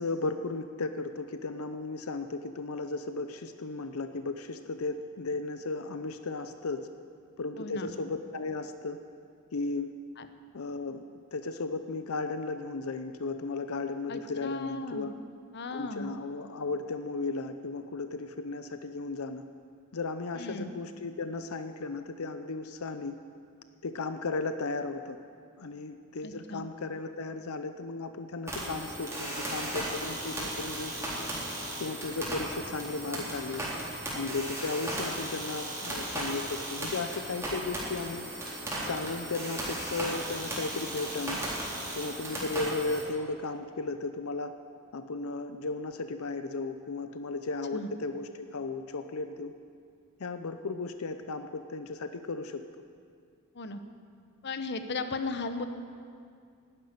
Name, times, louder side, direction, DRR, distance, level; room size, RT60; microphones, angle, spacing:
voice 1, 0.0-6.9 7.4-9.0 9.5-9.9 10.5-11.0 11.3-15.1 15.7-19.4 19.9-23.2 23.8-25.2 25.6-31.3 31.8-33.6 34.1-38.3 38.8-41.4 42.0-44.5 44.9-49.5 50.2-52.6, left 3 dB, 90° left, 9 dB, 0.7 m, -35 dB
voice 2, 7.6-7.9 10.2-10.3 14.1-15.1 15.5-16.1 20.4-20.7 26.2-26.6 47.7-47.9 53.5-53.8 54.4-55.6, left 3 dB, 55° left, 8 dB, 0.9 m, -36 dB
sound 1, 28.5-43.0, right 1 dB, 15° right, 3.9 m, -36 dB
11.5 x 11.0 x 9.8 m, 2.3 s
head